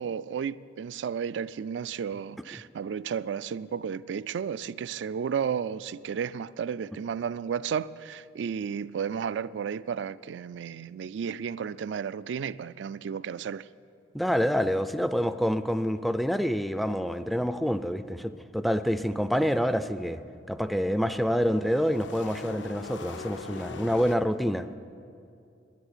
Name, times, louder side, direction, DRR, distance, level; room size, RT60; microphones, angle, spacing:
voice 1, 0.0-13.7, right 7 dB, 75° right, 0.3 m, -33 dB
voice 2, 14.1-20.2 20.5-24.8, equal, ahead, 0.3 m, -27 dB
Multiple Race Passes, 20.9-24.2, left 4 dB, 75° left, 0.7 m, -42 dB
10.5 x 9.9 x 9.8 m
head